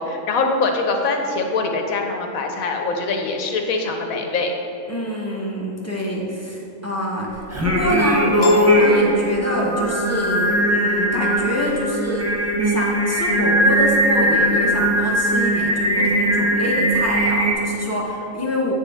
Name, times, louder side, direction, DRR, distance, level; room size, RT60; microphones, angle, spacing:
voice 1, 0.0-4.5, left 3 dB, 75° left, 3 dB, 1.2 m, -23 dB
voice 2, 4.9-12.3 12.6-18.7, equal, 15° left, -4 dB, 0.9 m, -25 dB
Singing, 7.5-17.5, equal, 20° right, 0.4 m, -19 dB
Piano, 8.4-9.9, left 3 dB, 45° left, 0.9 m, -30 dB
8.6 x 6.3 x 3.5 m, 2.8 s
omnidirectional pair, 1.5 m